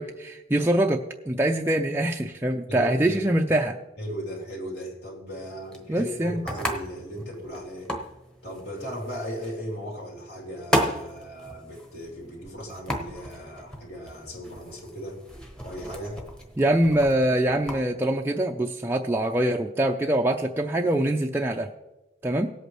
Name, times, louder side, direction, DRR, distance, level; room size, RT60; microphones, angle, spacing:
voice 1, 0.0-3.8 5.9-6.4 16.6-21.7 22.2-22.5, right 1 dB, 15° right, 2 dB, 0.4 m, -24 dB
voice 2, 2.7-3.2 4.0-7.9 8.4-15.2 15.6-16.2, equal, 70° left, -2 dB, 3.1 m, -37 dB
sound 1, 5.3-17.8, equal, 5° left, 1.0 m, -35 dB
18.0 x 8.1 x 3.1 m, 1.0 s
head